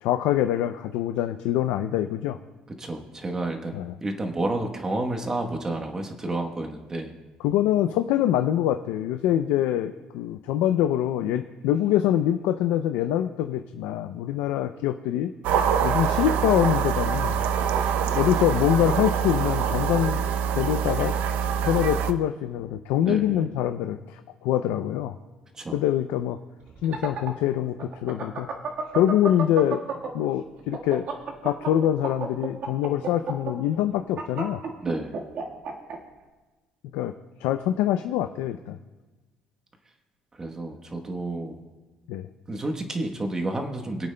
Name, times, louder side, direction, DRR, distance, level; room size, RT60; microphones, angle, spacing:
voice 1, 0.0-2.4 3.7-3.9 7.4-15.3 15.8-17.4 18.1-20.3 20.6-21.1 21.6-25.2 25.7-26.4 26.8-28.5 28.9-29.8 30.1-31.1 31.4-34.6 36.9-37.1 37.4-38.8 42.1-42.3, left 11 dB, 90° left, 8 dB, 0.4 m, -24 dB
voice 2, 2.8-7.1 23.0-23.5 25.5-25.8 34.8-35.2 40.4-41.6 42.5-44.1, right 2 dB, 20° right, 3 dB, 1.0 m, -30 dB
sound 1, 15.4-22.1, right 8 dB, 75° right, 0.6 m, -25 dB
sound 2, 26.7-30.3 30.6-36.0, right 5 dB, 55° right, 1.5 m, -31 dB
26.0 x 8.7 x 2.2 m, 1.2 s
cardioid pair, 135°, 3 cm